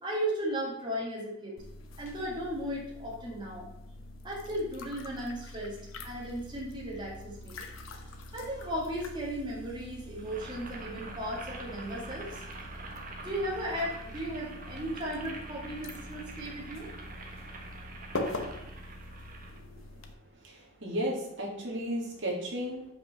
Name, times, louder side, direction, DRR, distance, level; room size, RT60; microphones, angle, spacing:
voice 1, 0.0-1.6 2.0-3.7 4.2-7.6 8.3-12.4 13.2-16.9, equal, 25° right, -4 dB, 2.0 m, -36 dB
sound 1, 1.6-20.1, left 2 dB, 90° left, 1.0 m, -44 dB
sound 2, 6.0-19.5, right 1 dB, 20° left, 2.1 m, -52 dB
Boiling, 10.2-19.6, right 3 dB, 45° right, 1.3 m, -46 dB
voice 2, 19.5-19.8 20.3-22.9, equal, 65° right, -2 dB, 2.1 m, -35 dB
5.6 x 5.4 x 6.6 m, 0.84 s
head